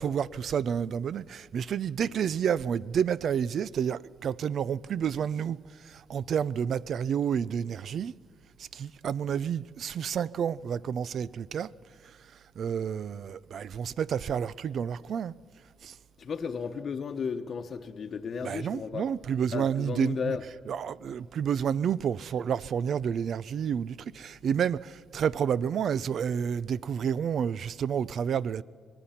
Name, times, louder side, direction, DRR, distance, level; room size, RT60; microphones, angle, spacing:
voice 1, 0.0-5.6 6.1-8.1 8.7-11.7 12.6-15.3 15.8-15.9 18.4-20.4 20.7-28.6, right 8 dB, 60° right, 0.5 m, -30 dB
voice 2, 16.2-19.1 19.5-20.5, left 6 dB, 50° left, 1.0 m, -34 dB
26.0 x 19.5 x 5.8 m
cardioid pair, 90°, 0 cm